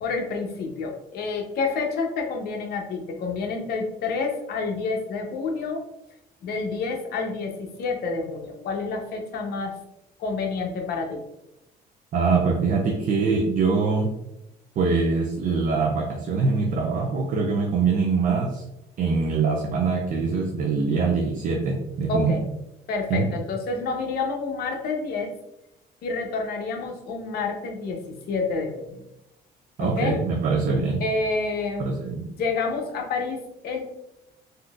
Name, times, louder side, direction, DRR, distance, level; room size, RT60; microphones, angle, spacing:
voice 1, 0.0-5.8 6.4-9.8 10.2-11.2 22.1-22.4 22.9-25.3 26.0-29.0 29.8-30.2 31.0-31.9 32.2-33.8, left 4 dB, 65° left, 3 dB, 0.7 m, -28 dB
voice 2, 12.1-14.1 14.8-18.6 19.0-22.4 23.1-23.3 29.8-31.0 31.8-32.2, right 4 dB, 50° right, 2 dB, 0.5 m, -23 dB
3.6 x 2.7 x 2.3 m, 0.87 s
cardioid pair, 110°, 17 cm